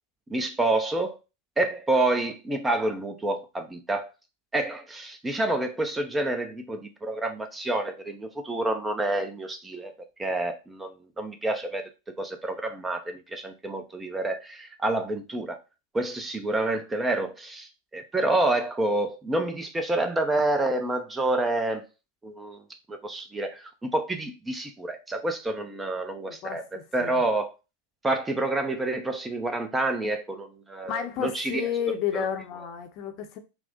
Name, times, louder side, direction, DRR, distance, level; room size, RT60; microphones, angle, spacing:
voice 1, 0.3-1.2 1.6-4.1 4.5-9.9 10.2-11.9 12.2-15.6 15.9-21.8 22.2-22.6 22.9-26.6 26.9-27.5 28.0-31.7 32.1-32.3, right 2 dB, 10° right, 0.6 m, -28 dB
voice 2, 26.2-27.2 30.8-33.4, left 8 dB, 40° left, 0.7 m, -32 dB
4.6 x 2.1 x 3.7 m
figure-of-eight pair, 90°, 0 cm